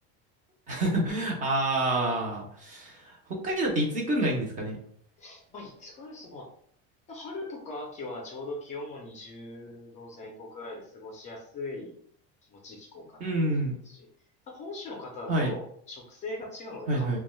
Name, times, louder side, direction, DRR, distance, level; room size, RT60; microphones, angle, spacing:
voice 1, 0.7-4.8 13.2-13.8 15.3-15.5 16.9-17.2, right 1 dB, 25° right, -1 dB, 0.6 m, -28 dB
voice 2, 5.2-6.5 7.1-11.9 12.5-13.3 13.8-14.1 14.5-17.2, left 2 dB, 25° left, -1 dB, 0.5 m, -40 dB
2.5 x 2.2 x 3.0 m, 0.64 s
cardioid pair, 165°, 30 cm